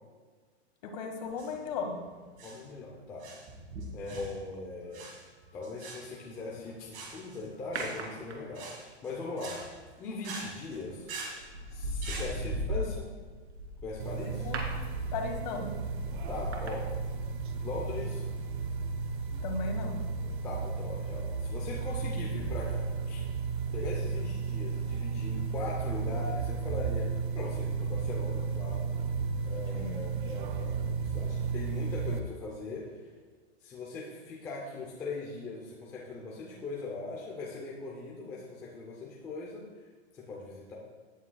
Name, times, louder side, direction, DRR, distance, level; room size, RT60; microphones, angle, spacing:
voice 1, 0.8-2.0 14.4-14.6 15.1-15.7 19.4-20.0 29.7-30.0, left 4 dB, 35° left, 4 dB, 1.5 m, -35 dB
sound 1, 1.2-12.3, right 3 dB, 25° right, 1.6 m, -45 dB
voice 2, 2.4-3.3 3.9-5.1 5.5-9.7 10.0-11.1 11.7-13.1 13.8-14.5 16.3-16.9 17.6-18.2 20.4-23.2 23.7-28.9 29.4-33.0 33.6-39.6 40.1-40.7, left 3 dB, 10° left, -4 dB, 0.5 m, -40 dB
sound 2, 7.8-8.8 10.7-10.9 11.4-17.6 17.9-18.0, equal, 85° right, 2.7 m, -38 dB
sound 3, 14.0-32.2, right 5 dB, 50° right, 0.7 m, -34 dB
17.0 x 8.7 x 2.3 m, 1.5 s
hypercardioid pair, 170°, 33 cm